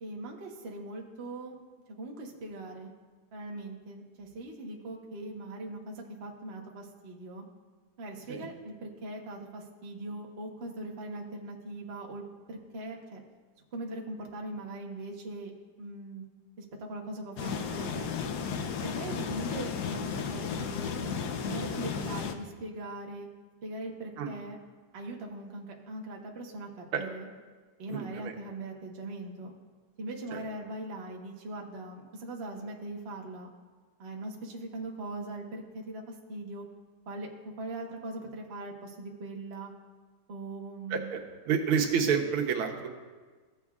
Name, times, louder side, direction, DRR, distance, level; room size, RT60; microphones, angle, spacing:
voice 1, 0.0-1.5 2.0-2.9 3.3-7.4 8.0-12.2 12.5-13.2 13.7-15.5 15.8-16.2 16.6-18.1 18.8-23.3 23.6-24.6 24.9-27.3 27.8-29.5 30.0-33.5 34.0-36.6 37.1-39.7 40.3-41.2, right 2 dB, 45° right, 0 dB, 0.9 m, -40 dB
sound 1, 17.4-22.3, left 6 dB, 75° left, 0.9 m, -34 dB
voice 2, 27.9-28.3 30.3-30.4 40.9-41.2 41.5-42.9, right 6 dB, 85° right, 2 dB, 1.8 m, -29 dB
15.0 x 7.2 x 2.4 m, 1.4 s
omnidirectional pair, 2.3 m